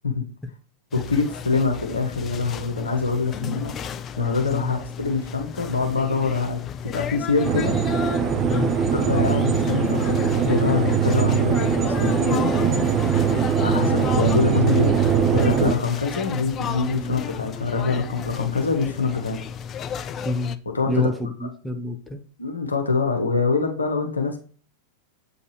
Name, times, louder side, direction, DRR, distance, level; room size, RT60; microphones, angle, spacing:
voice 1, 0.9-3.7 4.2-7.8 8.9-12.9 13.6-19.4 20.7-21.1 22.4-24.4, left 4 dB, 75° left, 4 dB, 1.2 m, -24 dB
sound 1, 0.9-20.6, left 8 dB, 30° left, 0.5 m, -34 dB
voice 2, 3.4-3.8 4.5-4.7 8.5-8.8 17.0-17.2 17.9-18.0 18.4-18.5 20.2-20.6 20.9-22.2, left 1 dB, 5° left, 5 dB, 1.0 m, -29 dB
sound 2, 7.4-15.7, right 7 dB, 25° right, 0.7 m, -21 dB
8.0 x 5.2 x 3.2 m, 0.42 s
figure-of-eight pair, 90°, 0 cm